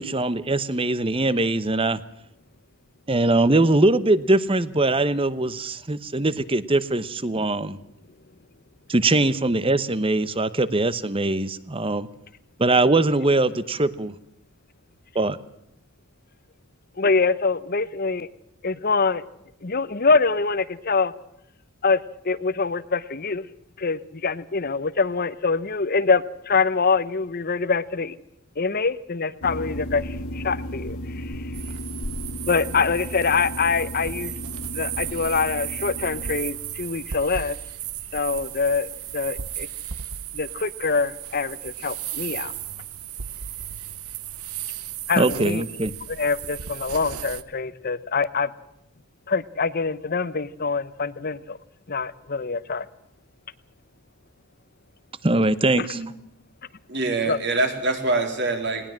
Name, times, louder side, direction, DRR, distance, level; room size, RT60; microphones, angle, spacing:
voice 1, 0.0-2.0 3.1-7.8 8.9-12.1 12.6-14.1 15.1-15.4 45.2-45.9 55.2-56.0, right 2 dB, 25° right, 16 dB, 0.9 m, -22 dB
voice 2, 17.0-18.3 18.6-19.2 19.6-21.1 21.8-23.5 23.8-28.2 28.6-31.4 32.5-34.3 34.7-37.6 38.1-39.7 40.3-42.5 45.1-45.6 46.1-48.5 49.3-51.6 51.9-52.9 55.8-55.9 57.2-57.4, left 4 dB, 45° left, 16 dB, 0.8 m, -24 dB
sound 1, 29.4-36.4, equal, 70° left, 1.4 m, -34 dB
sound 2, 31.5-47.4, right 10 dB, 80° right, 1.1 m, -35 dB
voice 3, 56.9-58.9, right 2 dB, 50° right, 5 dB, 3.8 m, -24 dB
20.0 x 19.5 x 7.6 m, 0.78 s
head